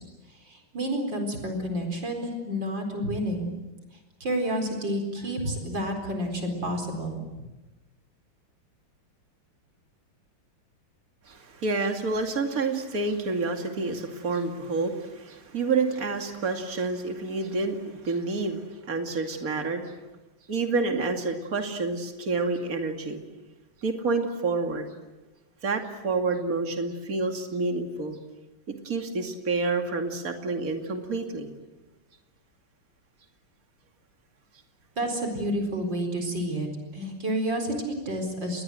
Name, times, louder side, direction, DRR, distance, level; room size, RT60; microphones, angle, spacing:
voice 1, 0.4-3.5 4.2-7.2 35.0-38.6, equal, 60° right, 4 dB, 5.0 m, -30 dB
voice 2, 11.3-19.9 20.5-23.2 23.8-24.9 25.6-28.2 28.8-31.5, right 3 dB, 40° right, 4 dB, 2.9 m, -28 dB
29.5 x 21.5 x 7.8 m, 1.1 s
omnidirectional pair, 2.3 m